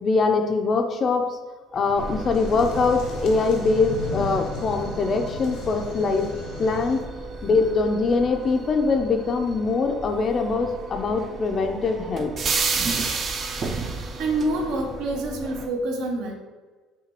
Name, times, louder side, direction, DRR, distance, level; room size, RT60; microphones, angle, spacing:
voice 1, 0.0-1.4 1.7-6.3 6.6-7.0 7.4-12.3, left 4 dB, 40° left, 5 dB, 0.4 m, -23 dB
sound 1, 1.7-7.0, left 3 dB, 85° left, 0.9 m, -36 dB
sound 2, 2.0-15.7, right 3 dB, 40° right, 0.5 m, -33 dB
voice 2, 14.2-16.3, right 2 dB, 75° right, 3 dB, 0.7 m, -26 dB
5.7 x 2.2 x 2.9 m, 1.3 s
cardioid pair, 105°, 0 cm